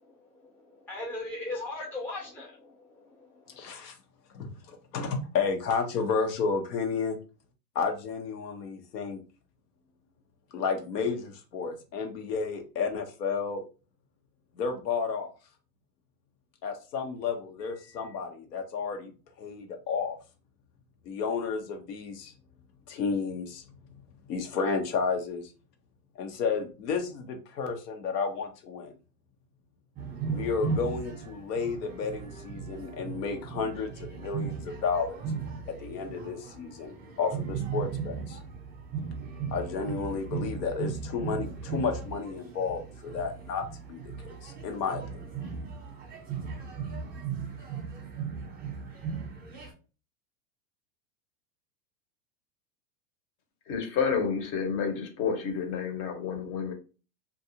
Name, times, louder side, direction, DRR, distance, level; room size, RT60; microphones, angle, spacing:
voice 1, 0.1-3.7, left 2 dB, 5° left, 0.4 m, -39 dB
voice 2, 3.6-3.9 4.3-7.2 7.7-9.2 10.5-13.6 14.5-15.3 16.6-20.2 21.0-22.3 22.9-23.6 24.3-25.5 26.2-28.9 30.3-35.3 35.8-38.4 39.5-45.2, left 5 dB, 80° left, 1.0 m, -32 dB
sound 1, 30.0-49.7, right 5 dB, 20° right, 0.8 m, -37 dB
voice 3, 53.7-56.7, left 6 dB, 40° left, 0.9 m, -30 dB
2.5 x 2.3 x 2.7 m
hypercardioid pair, 125°, 49 cm